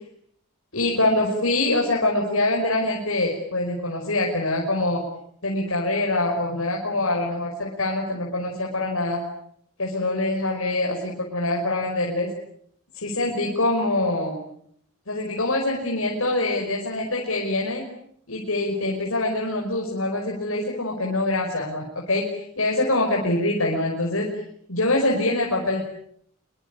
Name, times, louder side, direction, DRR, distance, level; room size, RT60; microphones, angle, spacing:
voice 1, 0.7-5.0 5.4-9.2 9.8-12.3 12.9-14.4 15.1-17.8 18.3-24.4 24.7-25.8, left 2 dB, 85° left, -1 dB, 5.6 m, -24 dB
26.5 x 24.0 x 8.5 m, 0.68 s
head